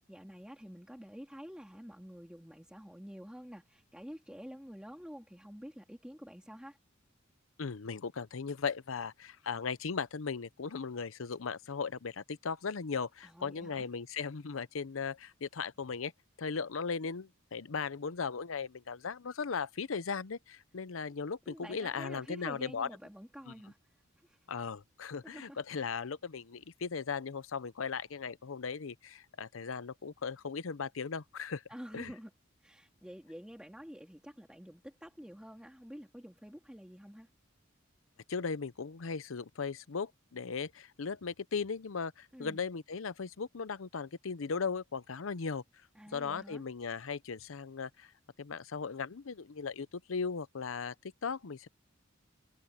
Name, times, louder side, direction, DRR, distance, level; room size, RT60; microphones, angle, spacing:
voice 1, 0.0-6.8 13.2-13.9 21.5-23.8 24.2-24.4 25.2-25.6 31.7-32.3 32.6-37.3 42.3-42.7 46.0-46.6, equal, 5° right, 2.3 m, -49 dB
voice 2, 7.6-16.1 16.4-22.9 23.5-23.6 24.5-31.6 31.9-32.1 38.3-45.6 46.1-48.1 48.4-50.9 51.2-51.7, left 5 dB, 85° left, 0.7 m, -37 dB
head